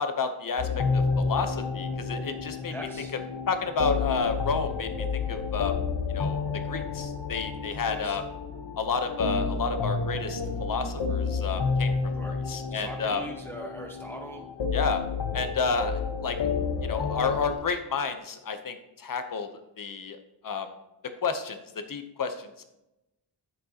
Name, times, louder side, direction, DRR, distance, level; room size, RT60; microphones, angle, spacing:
voice 1, 0.0-2.7 3.5-5.8 6.1-6.4 6.7-8.2 8.8-11.9 12.3-13.2 14.7-15.0 15.3-16.4 16.8-19.5 19.8-20.2 20.4-20.7 21.2-22.6, left 5 dB, 50° left, 8 dB, 0.9 m, -30 dB
sound 1, 0.6-17.6, left 5 dB, 90° left, 1.1 m, -30 dB
voice 2, 2.7-3.1 7.8-8.2 12.1-12.3 12.7-14.4, right 1 dB, 5° left, 1 dB, 0.7 m, -41 dB
9.8 x 8.0 x 2.9 m, 0.91 s
wide cardioid pair, 165°, 42 cm